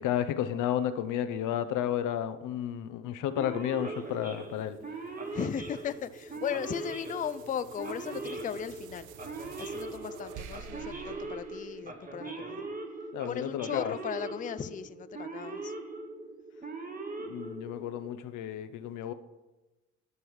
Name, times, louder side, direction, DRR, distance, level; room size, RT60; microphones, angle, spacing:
voice 1, 0.0-4.8 13.1-13.9 17.3-19.1, left 10 dB, 90° left, 0.7 m, -32 dB
Male speech man speaking / Siren, 3.3-18.1, right 3 dB, 30° right, 1.3 m, -40 dB
sound 1, 3.9-12.5, right 7 dB, 80° right, 0.7 m, -51 dB
voice 2, 5.3-9.1 9.6-12.7 13.3-15.7, left 8 dB, 25° left, 0.4 m, -37 dB
11.0 x 5.4 x 4.8 m
cardioid pair, 90°, 30 cm